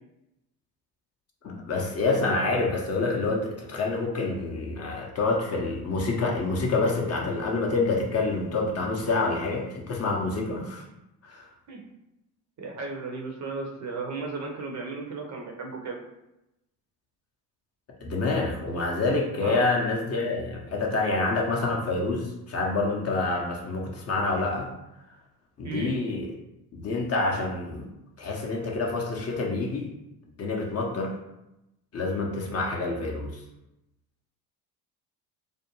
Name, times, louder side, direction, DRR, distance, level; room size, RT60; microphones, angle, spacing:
voice 1, 1.4-10.8 11.2-11.5 18.0-24.7 25.6-26.3 26.7-27.9 28.2-29.9 30.4-31.2 31.9-33.4, left 3 dB, 30° left, -1 dB, 0.6 m, -27 dB
voice 2, 12.6-16.0 19.4-19.7 25.6-25.9, right 3 dB, 35° right, 1 dB, 0.6 m, -35 dB
2.5 x 2.1 x 2.9 m, 0.89 s
hypercardioid pair, 60°, 49 cm